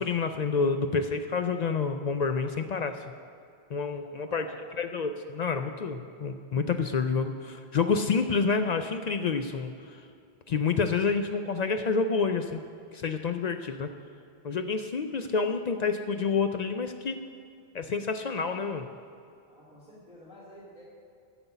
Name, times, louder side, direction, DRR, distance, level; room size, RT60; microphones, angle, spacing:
voice 1, 0.0-3.0 3.7-4.5 4.8-10.0 10.5-12.6 12.9-13.9 14.4-17.2 17.7-18.9, left 5 dB, 55° left, 7 dB, 0.5 m, -28 dB
voice 2, 3.9-4.6 19.5-20.8, equal, 5° right, -8 dB, 2.4 m, -51 dB
9.4 x 6.0 x 8.0 m, 2.4 s
omnidirectional pair, 1.1 m